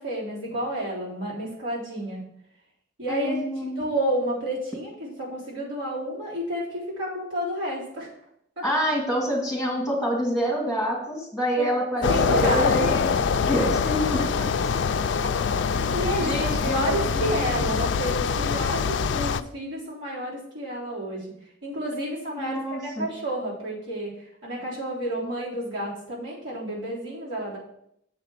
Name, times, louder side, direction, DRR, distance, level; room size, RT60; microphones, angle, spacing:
voice 1, 0.0-2.2 3.0-3.4 3.8-8.1 8.6-8.7 11.6-11.7 12.1-12.9 15.2-15.3 15.7-21.3 21.6-24.2 24.4-27.6, right 1 dB, 80° right, -7 dB, 3.7 m, -30 dB
voice 2, 3.1-3.8 8.6-13.1 13.5-14.5 15.8-15.9 16.2-17.8 22.4-23.1, equal, 5° right, -3 dB, 2.2 m, -27 dB
sound 1, 12.0-19.4, left 5 dB, 70° left, 0.4 m, -24 dB
7.6 x 4.9 x 6.0 m, 0.74 s
head